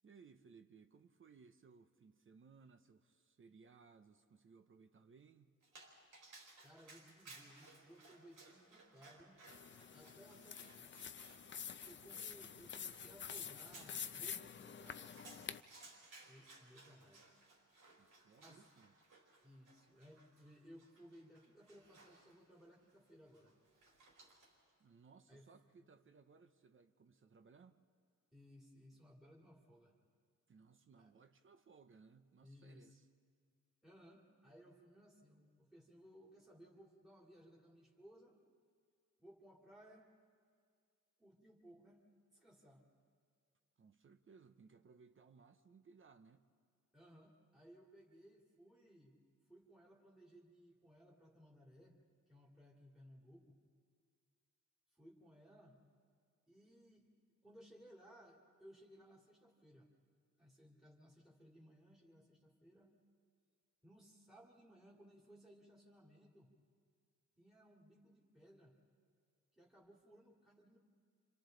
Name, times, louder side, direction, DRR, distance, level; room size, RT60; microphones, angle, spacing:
voice 1, 0.0-5.5 18.0-18.9 24.8-27.8 30.5-33.1 43.8-46.4, right 5 dB, 40° right, 0.7 m, -64 dB
Dog, 5.6-24.7, right 3 dB, 85° right, 4.4 m, -62 dB
voice 2, 6.6-9.4 9.9-11.0 11.8-15.4 16.3-17.3 18.4-18.6 19.4-23.6 25.3-25.5 25.8-25.9 28.3-30.0 31.0-31.1 32.4-33.0 33.8-38.4 39.2-40.1 41.2-42.0 42.3-42.9 46.9-49.2 49.5-52.0 52.3-53.6 54.9-55.8 56.5-57.1 57.4-59.9 60.4-62.9 63.8-66.5 67.4-68.8 69.5-70.8, equal, ahead, 2.4 m, -62 dB
sound 1, 9.5-15.6, left 7 dB, 40° left, 0.5 m, -48 dB
30.0 x 26.5 x 3.9 m
wide cardioid pair, 160°, 31 cm